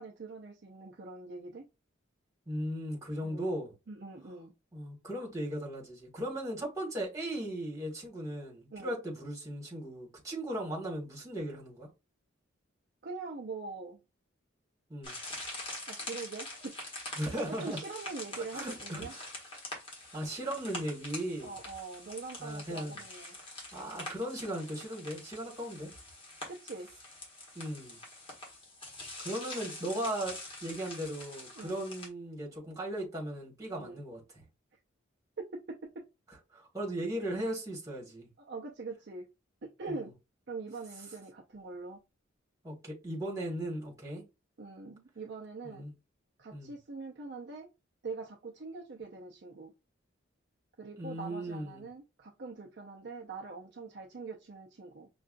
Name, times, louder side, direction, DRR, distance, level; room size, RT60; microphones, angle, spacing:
voice 1, 0.0-1.7 3.2-3.5 3.9-4.5 8.7-9.0 13.0-14.0 15.6-16.7 17.5-19.1 21.4-23.4 26.5-26.9 31.5-31.8 33.8-34.0 35.4-36.0 38.4-39.3 39.6-40.1 40.5-42.0 44.6-45.8 46.4-47.7 48.0-49.7 50.8-55.1, right 3 dB, 55° right, 0.6 m, -43 dB
voice 2, 2.5-3.7 4.7-11.9 14.9-15.2 17.2-17.8 18.5-19.2 20.1-21.5 22.4-23.0 23.7-25.9 27.6-28.0 29.2-34.4 36.5-38.3 39.9-40.1 42.6-44.2 45.6-45.9 46.5-46.8 51.0-51.9, right 1 dB, 15° right, 1.7 m, -37 dB
sound 1, 15.0-32.1, left 2 dB, 25° left, 1.4 m, -45 dB
5.5 x 2.4 x 2.5 m
head